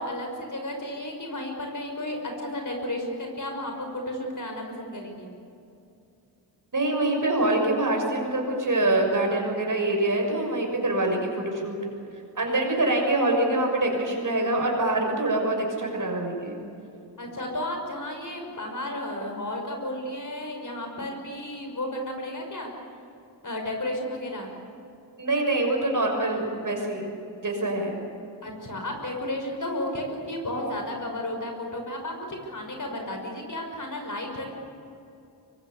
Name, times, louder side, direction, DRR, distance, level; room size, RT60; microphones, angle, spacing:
voice 1, 0.0-5.3 17.2-22.7 23.4-24.5 28.4-34.6, left 1 dB, 45° left, 2 dB, 5.9 m, -33 dB
voice 2, 6.7-11.8 12.4-16.6 25.2-27.1 27.4-28.0, right 2 dB, 50° right, 1 dB, 6.6 m, -25 dB
25.0 x 23.0 x 8.4 m, 2.7 s
wide cardioid pair, 100°, 42 cm